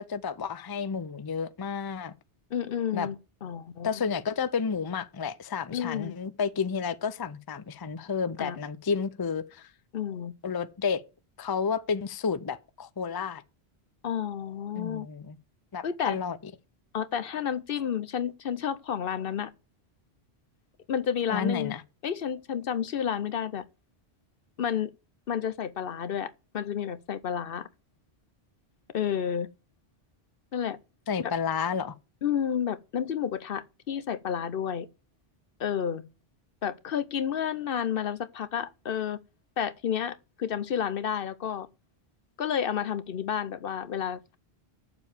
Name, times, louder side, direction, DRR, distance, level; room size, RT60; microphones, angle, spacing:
voice 1, 0.0-2.1 2.9-3.1 3.8-9.7 10.4-11.0 11.4-13.4 14.8-15.4 15.7-16.4 21.3-21.8 31.1-31.9, left 6 dB, 30° left, 0.5 m, -31 dB
voice 2, 2.5-3.9 5.7-6.1 8.4-8.6 9.9-10.3 14.0-15.1 15.8-16.2 16.9-19.5 20.9-21.7 22.0-23.6 24.6-24.9 25.3-27.7 28.9-29.5 30.5-30.8 31.2-31.3 32.2-34.9 35.6-36.0 36.6-39.2 39.6-41.7 42.4-44.4, left 8 dB, 60° left, 0.9 m, -31 dB
7.2 x 6.9 x 8.2 m
omnidirectional pair, 1.1 m